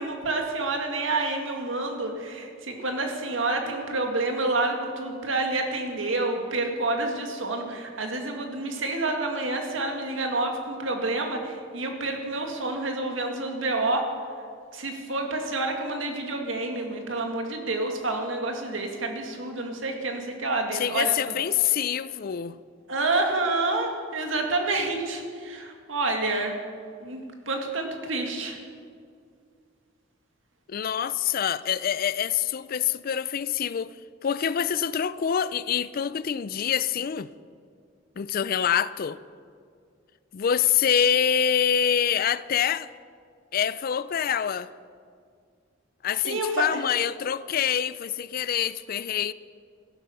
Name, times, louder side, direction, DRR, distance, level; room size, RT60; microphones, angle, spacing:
voice 1, 0.0-14.1 14.7-21.2 22.9-26.6 27.0-28.6 46.2-46.8, right 2 dB, 85° right, 2.0 m, -28 dB
voice 2, 20.7-22.6 30.7-33.9 34.2-37.3 38.2-39.2 40.3-42.9 43.5-44.7 46.0-49.3, left 8 dB, 50° left, 0.4 m, -25 dB
14.0 x 11.0 x 6.8 m
head